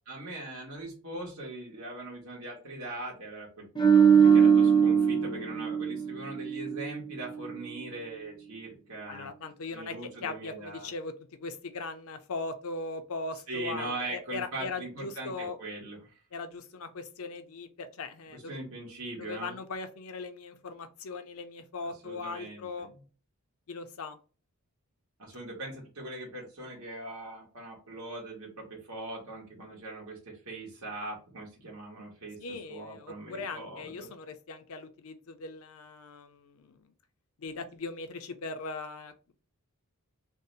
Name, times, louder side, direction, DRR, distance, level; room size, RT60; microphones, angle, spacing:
voice 1, 0.1-9.3 9.7-10.9 13.5-16.2 18.3-19.5 21.8-22.9 25.2-34.1, right 2 dB, 70° right, 1.0 m, -41 dB
sound 1, 3.7-7.0 7.3-7.6, right 7 dB, 20° left, 0.5 m, -22 dB
voice 2, 9.1-11.1 11.4-15.6 16.3-18.6 19.2-22.9 23.7-24.2 32.4-36.9 37.4-39.3, left 3 dB, 70° left, 0.5 m, -39 dB
2.6 x 2.0 x 3.8 m
head